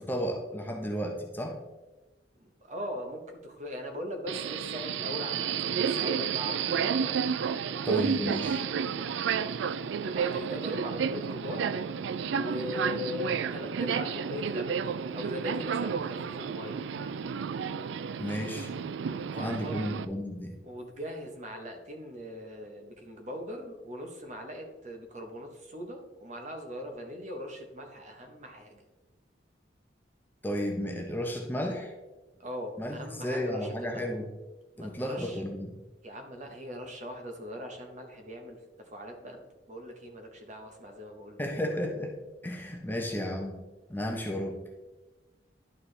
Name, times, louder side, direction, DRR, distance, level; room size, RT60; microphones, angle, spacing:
voice 1, 0.0-1.6 7.9-8.6 18.2-18.7 19.3-20.5 30.4-31.9 32.8-34.3 34.8-35.7 41.4-42.1 42.4-43.6 43.9-44.6, equal, 10° left, 1 dB, 0.8 m, -33 dB
voice 2, 2.4-7.2 10.1-11.7 12.3-16.8 19.3-19.8 20.6-28.8 32.4-34.1 34.7-35.4 36.0-41.4, left 1 dB, 40° right, 3 dB, 1.0 m, -40 dB
Subway metro underground, 4.3-20.0, right 7 dB, 80° right, 0.3 m, -31 dB
11.0 x 4.5 x 3.3 m, 1.1 s
head